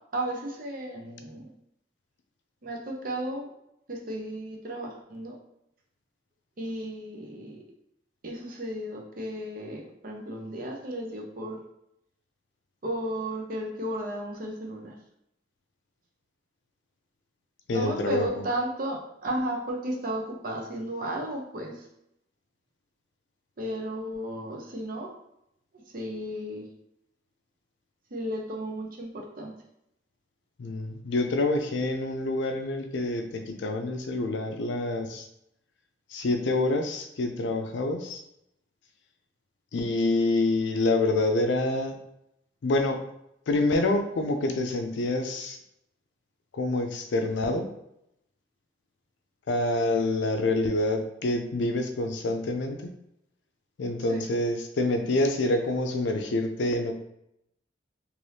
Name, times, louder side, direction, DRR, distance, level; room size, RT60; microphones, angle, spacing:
voice 1, 0.1-1.5 2.6-3.5 3.9-5.4 6.6-7.6 8.2-11.6 12.8-14.9 17.7-21.9 23.6-25.1 25.9-26.7 28.1-29.5 54.1-54.3, right 1 dB, 50° right, 0 dB, 0.6 m, -34 dB
voice 2, 17.7-18.2 30.6-35.3 36.1-38.2 39.7-42.0 42.6-43.0 43.5-45.6 46.5-47.7 49.5-52.9 53.8-56.9, left 2 dB, 75° left, 6 dB, 0.4 m, -27 dB
3.3 x 2.6 x 2.7 m, 0.80 s
head